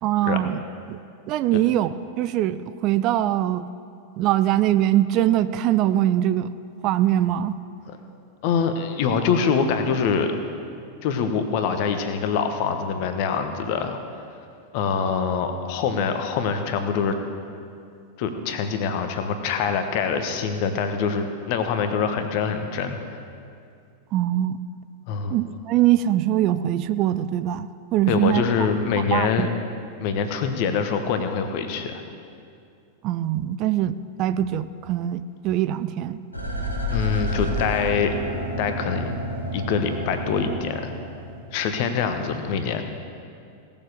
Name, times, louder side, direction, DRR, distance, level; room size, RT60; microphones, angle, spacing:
voice 1, 0.0-0.6 0.9-1.0 1.3-3.7 4.2-6.5 6.8-7.6 24.1-24.6 25.3-28.7 29.1-29.5 33.0-36.2, right 12 dB, 40° right, 13 dB, 0.4 m, -22 dB
voice 2, 8.4-10.3 11.0-14.0 14.7-17.2 18.2-23.2 25.1-25.4 28.1-29.5 30.0-32.0 36.9-38.2 38.6-39.1 39.5-41.0 41.5-42.8, left 6 dB, 45° left, 7 dB, 1.2 m, -24 dB
sound 1, 36.3-41.5 41.9-42.0, left 1 dB, 85° left, 2.3 m, -29 dB
17.5 x 7.1 x 6.7 m, 2.4 s
figure-of-eight pair, 90°, 0 cm